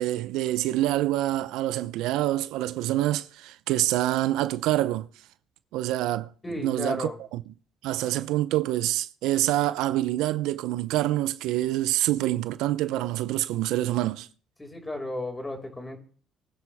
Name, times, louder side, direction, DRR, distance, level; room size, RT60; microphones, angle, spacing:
voice 1, 0.0-5.1 5.7-6.3 6.6-7.4 7.8-14.3, right 15 dB, 80° right, 0.7 m, -26 dB
voice 2, 6.4-7.1 14.6-16.0, left 1 dB, 20° left, 5.7 m, -33 dB
23.5 x 9.8 x 3.6 m
supercardioid pair, 65°, 0 cm